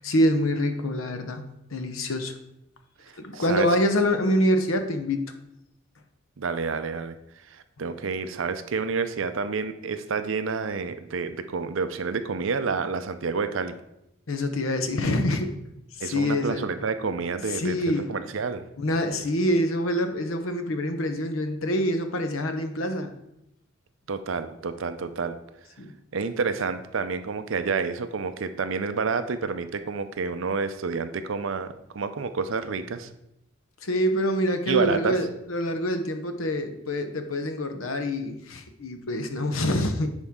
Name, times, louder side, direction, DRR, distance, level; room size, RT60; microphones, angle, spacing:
voice 1, 0.0-1.4 1.7-2.4 3.2-5.3 14.3-15.5 15.9-16.6 17.5-18.1 18.8-23.1 25.8-25.9 33.8-40.1, left 1 dB, 80° left, 7 dB, 0.9 m, -26 dB
voice 2, 3.0-3.7 6.4-7.2 7.5-13.8 16.0-18.6 24.1-25.4 26.1-33.1 34.7-35.2, right 4 dB, 70° right, 10 dB, 0.5 m, -29 dB
10.0 x 4.5 x 3.7 m, 0.83 s
head